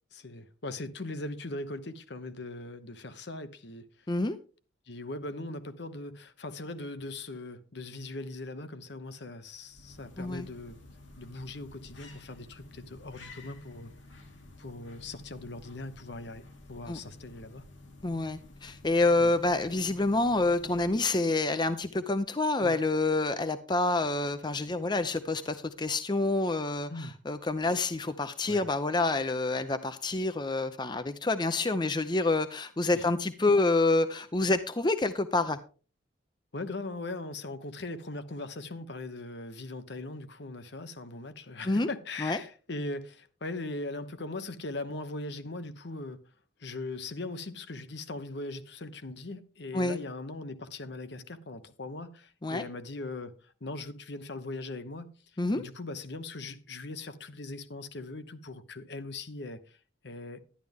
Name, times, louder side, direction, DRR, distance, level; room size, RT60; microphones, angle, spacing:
voice 1, 0.1-3.9 4.9-10.8 11.2-13.9 14.6-16.4 16.7-17.6 19.2-19.3 22.6-22.7 26.9-27.1 28.5-28.6 32.9-33.0 36.5-46.2 46.6-55.1 55.5-59.8 60.0-60.4, left 2 dB, 60° left, 1.0 m, -40 dB
sound 1, 9.4-21.3, left 2 dB, 75° left, 2.3 m, -52 dB
voice 2, 18.0-35.6 41.7-41.9 42.2-42.4 49.7-50.0 52.4-52.6 55.4-55.6, left 2 dB, 25° left, 0.6 m, -27 dB
11.5 x 10.5 x 3.5 m
head